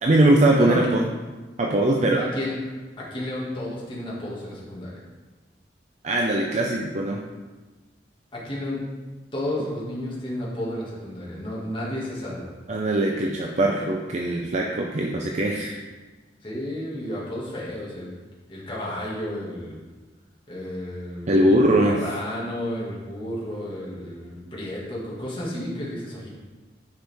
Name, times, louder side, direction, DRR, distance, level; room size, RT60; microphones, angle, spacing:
voice 1, 0.0-1.0 1.6-2.3 6.0-7.2 12.7-15.8 21.3-22.0, right 1 dB, 40° right, 0 dB, 0.6 m, -21 dB
voice 2, 1.9-2.6 3.0-5.0 8.3-8.8 9.3-12.5 16.4-18.1 18.5-19.8 20.5-26.3, left 1 dB, 30° left, -6 dB, 1.9 m, -32 dB
10.0 x 4.9 x 3.5 m, 1.3 s
head